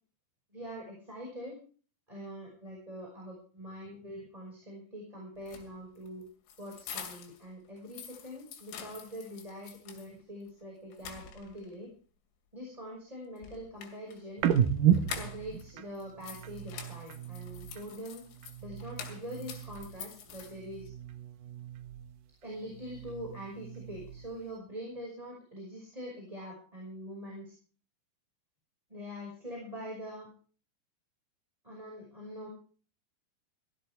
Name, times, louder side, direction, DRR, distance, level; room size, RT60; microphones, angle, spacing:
voice 1, 0.5-1.6 2.1-6.2 6.6-11.9 12.5-14.4 15.0-18.2 18.6-20.9 22.4-27.5 28.9-30.3 31.6-32.5, equal, 5° right, -2 dB, 5.2 m, -44 dB
sound 1, 5.4-7.4 7.8-10.1 10.5-10.6 10.9-11.7 13.4-15.6 15.9-20.9, left 8 dB, 85° left, 5.0 m, -46 dB
sound 2, 14.4-18.0 18.3-20.1 20.4-22.2 22.6-24.5, right 9 dB, 75° right, 2.0 m, -33 dB
17.5 x 15.5 x 3.4 m, 0.40 s
omnidirectional pair, 5.6 m